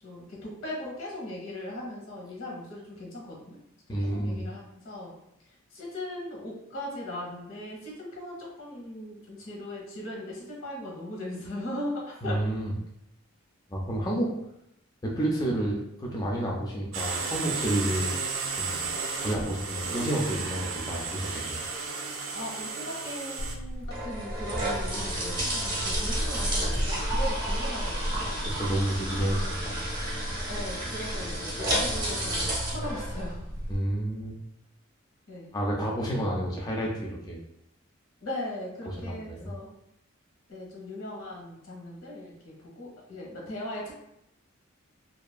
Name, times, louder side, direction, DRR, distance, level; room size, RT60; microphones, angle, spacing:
voice 1, 0.0-3.6 4.0-5.1 5.7-12.4 22.3-28.5 30.5-33.5 35.3-35.5 38.2-39.7 40.5-43.9, left 1 dB, 85° left, -2 dB, 1.0 m, -39 dB
voice 2, 3.9-4.4 12.2-12.7 13.7-14.3 15.0-18.1 18.6-21.6 28.5-29.8 33.7-34.4 35.5-37.4 38.9-39.5, right 1 dB, 20° left, -2 dB, 0.3 m, -30 dB
sound 1, 16.9-23.5, right 4 dB, 70° right, 0.4 m, -33 dB
sound 2, 23.4-33.8, right 1 dB, 20° right, 0.6 m, -30 dB
2.7 x 2.4 x 2.2 m, 0.79 s
head